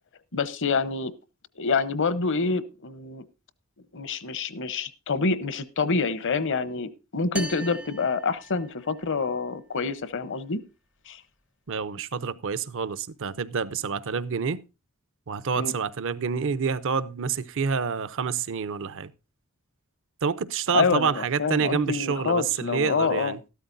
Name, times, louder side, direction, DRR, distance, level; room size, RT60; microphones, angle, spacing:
voice 1, 0.3-1.1 1.6-3.2 3.9-10.6 11.1-11.2 15.6-15.7 20.7-23.3, left 4 dB, 60° left, 0.8 m, -27 dB
sound 1, 7.4-9.1, equal, 5° right, 0.5 m, -38 dB
voice 2, 11.7-14.6 15.3-19.1 20.2-23.4, right 6 dB, 60° right, 0.6 m, -28 dB
13.0 x 13.0 x 2.6 m
head